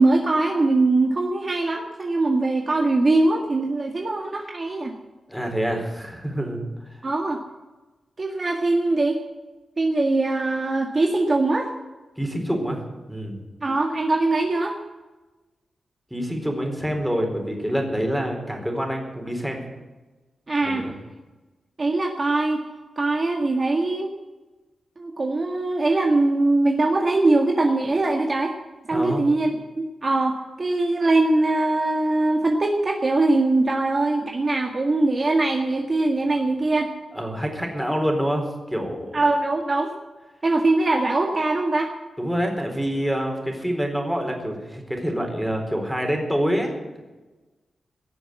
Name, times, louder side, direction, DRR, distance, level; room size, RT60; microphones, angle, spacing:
voice 1, 0.0-4.9 7.0-7.4 8.2-9.2 9.8-11.7 13.6-14.8 20.5-20.8 21.8-22.6 23.0-24.1 25.0-28.5 28.9-36.9 39.1-39.9 40.4-41.9, right 2 dB, 40° right, 2 dB, 1.8 m, -22 dB
voice 2, 5.3-6.6 6.9-7.0 12.2-12.8 13.1-13.4 16.1-19.6 20.6-20.9 28.9-29.2 36.4-36.5 37.1-39.2 42.2-46.7, equal, ahead, 2 dB, 4.1 m, -26 dB
18.0 x 7.1 x 9.5 m, 1.2 s
cardioid pair, 80°, 0 cm